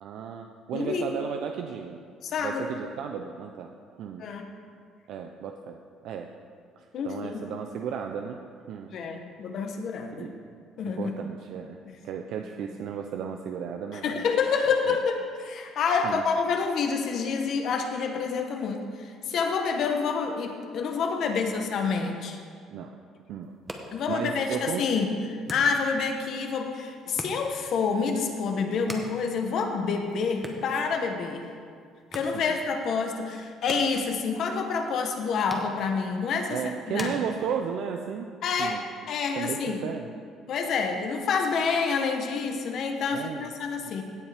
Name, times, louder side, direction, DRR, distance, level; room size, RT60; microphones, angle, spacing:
voice 1, 0.0-2.0 2.4-3.7 4.0-4.3 5.1-6.3 6.8-8.4 8.7-9.0 10.2-10.4 10.8-11.8 12.0-14.2 14.9-15.0 16.0-16.2 22.7-23.0 23.3-23.5 24.1-24.8 32.3-32.6 36.5-38.3 38.6-38.8 39.4-40.1 43.1-43.5 43.8-43.9, right 7 dB, 65° right, 4 dB, 0.5 m, -34 dB
voice 2, 0.7-1.1 2.2-2.7 4.2-4.5 6.9-7.5 8.9-10.3 10.8-11.1 13.9-22.4 23.9-31.4 32.1-36.6 36.9-37.2 38.4-39.8 40.5-44.0, left 5 dB, 55° left, 4 dB, 1.0 m, -28 dB
sound 1, 23.4-37.9, right 1 dB, 10° right, 0.9 m, -45 dB
16.5 x 7.2 x 3.5 m, 2.1 s
cardioid pair, 140°, 0 cm